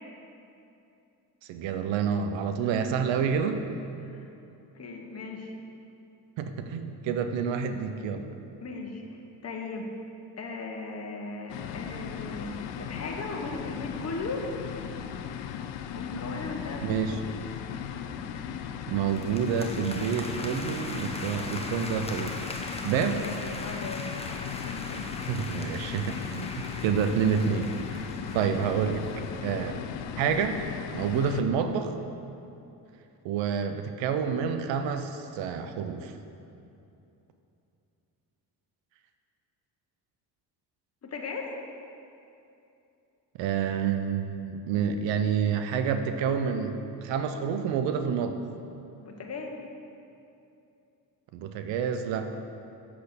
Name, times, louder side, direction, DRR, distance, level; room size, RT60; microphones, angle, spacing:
voice 1, 1.5-3.7 6.4-8.2 16.8-17.2 18.9-22.4 22.8-23.3 25.3-26.5 26.8-28.1 28.3-29.0 29.4-29.8 30.2-30.6 30.9-31.9 33.2-36.1 43.4-48.4 51.3-52.3, right 7 dB, 90° right, 8 dB, 0.6 m, -28 dB
voice 2, 4.0-4.3 4.7-5.5 8.6-9.9 10.4-14.5 15.9-16.9 23.6-25.1 26.7-27.0 41.0-41.5 49.0-49.5, left 3 dB, 35° left, 1 dB, 1.1 m, -38 dB
sound 1, 11.5-31.4, left 8 dB, 80° left, 0.6 m, -37 dB
sound 2, 19.1-29.4, left 2 dB, 15° left, 0.8 m, -40 dB
7.7 x 4.3 x 6.7 m, 2.7 s
supercardioid pair, 65°, 43 cm